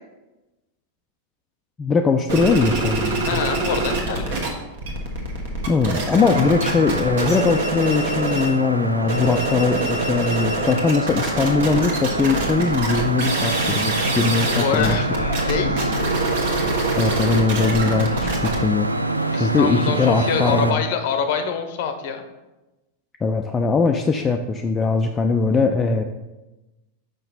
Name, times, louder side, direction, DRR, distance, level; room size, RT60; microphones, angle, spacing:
voice 1, 1.8-3.4 5.7-15.0 17.0-18.9 19.3-20.8 23.2-26.0, left 4 dB, 20° left, 4 dB, 0.4 m, -21 dB
sound 1, 2.3-4.5 4.7-8.6 9.0-20.5, right 3 dB, 55° right, 1.2 m, -26 dB
voice 2, 3.3-4.3 11.7-11.9 14.4-16.0 19.2-22.2, left 6 dB, 50° left, 7 dB, 0.7 m, -26 dB
sound 2, 6.2-20.7, right 1 dB, 85° right, 0.3 m, -26 dB
5.7 x 5.3 x 4.1 m, 1.0 s
figure-of-eight pair, 90°, 0 cm